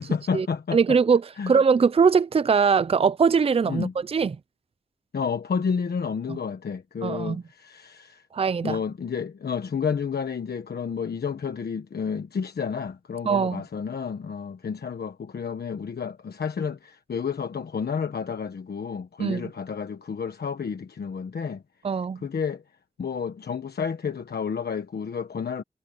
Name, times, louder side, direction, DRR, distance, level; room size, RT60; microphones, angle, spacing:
voice 1, 0.0-0.8 1.4-1.5 3.7-3.9 5.1-8.3 8.6-21.6 22.2-22.6 23.0-25.6, left 6 dB, 75° left, 1.3 m, -30 dB
voice 2, 0.7-4.4 6.3-6.4 7.0-7.4 8.3-8.8 13.2-13.6 19.2-19.5 21.8-22.2, right 5 dB, 35° right, 0.4 m, -21 dB
wide cardioid pair, 90°, 17 cm